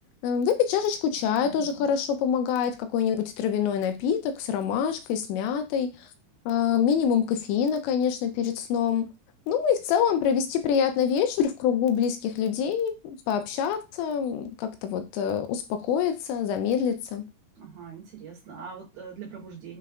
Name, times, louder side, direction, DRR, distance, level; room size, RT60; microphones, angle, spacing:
voice 1, 0.2-6.1 6.5-9.1 9.5-17.3, left 8 dB, 85° left, 2.7 m, -26 dB
voice 2, 1.4-1.9 17.6-19.8, right 6 dB, 70° right, 2.7 m, -42 dB
6.8 x 3.1 x 2.4 m
omnidirectional pair, 5.3 m